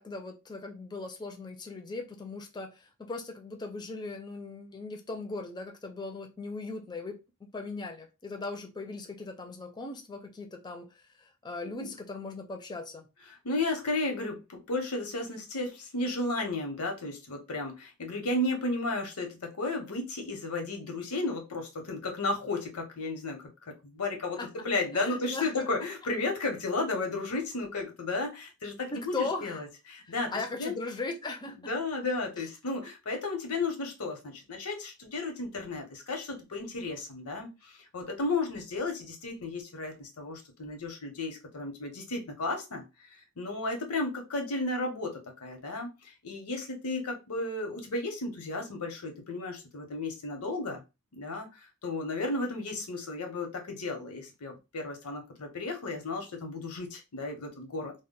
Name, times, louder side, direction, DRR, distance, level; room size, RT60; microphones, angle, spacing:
voice 1, 0.0-7.2 7.5-13.1 24.3-24.7 24.9-25.7 28.9-29.6 30.1-31.7 32.4-32.5, left 3 dB, 20° left, 0.4 m, -38 dB
voice 2, 13.4-23.4 23.8-24.4 24.6-30.3 30.6-30.7 31.7-42.8 43.4-50.8 51.1-57.9, left 2 dB, 90° left, 0.8 m, -33 dB
2.1 x 2.1 x 3.6 m
head